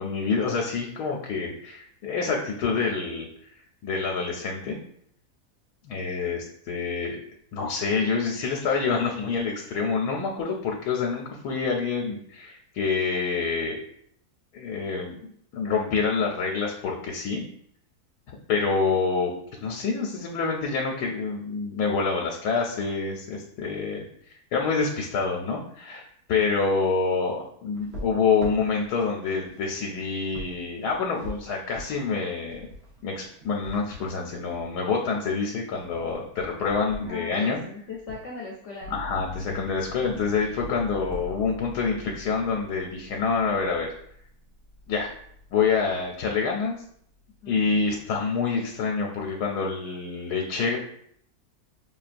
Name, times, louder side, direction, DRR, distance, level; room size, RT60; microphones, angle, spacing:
voice 1, 0.0-3.3 3.8-4.8 5.8-7.2 7.5-13.8 14.5-17.4 18.5-19.3 19.6-24.0 24.5-32.7 33.0-37.6 38.9-43.9 44.9-45.1 45.5-46.8 47.5-50.8, left 5 dB, 85° left, 0 dB, 1.1 m, -27 dB
sound 1, 27.7-38.3 39.1-39.6 39.8-41.3, equal, 45° right, 1.1 m, -44 dB
voice 2, 37.0-39.0 47.4-47.6, left 3 dB, 60° left, -3 dB, 0.8 m, -38 dB
sound 2, 38.8-46.6 47.1-47.9, left 3 dB, 65° right, 0.9 m, -43 dB
5.5 x 2.3 x 2.5 m, 0.66 s
omnidirectional pair, 1.7 m